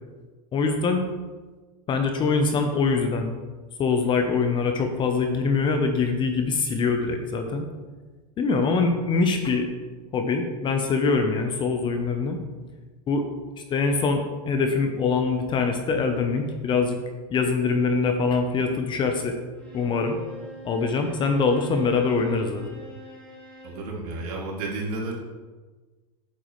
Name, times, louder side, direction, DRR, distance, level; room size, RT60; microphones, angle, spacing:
voice 1, 0.5-1.0 1.9-3.3 3.8-7.6 8.4-9.7 10.1-12.4 13.1-13.2 13.7-17.0 17.3-19.3 19.7-20.2 20.6-22.8, left 4 dB, 20° left, 5 dB, 0.7 m, -23 dB
Bowed string instrument, 19.5-23.9, equal, 5° left, 2.3 m, -44 dB
voice 2, 23.6-25.2, right 2 dB, 60° right, -2 dB, 2.4 m, -31 dB
8.3 x 6.8 x 3.1 m, 1.3 s
supercardioid pair, 140°, 21 cm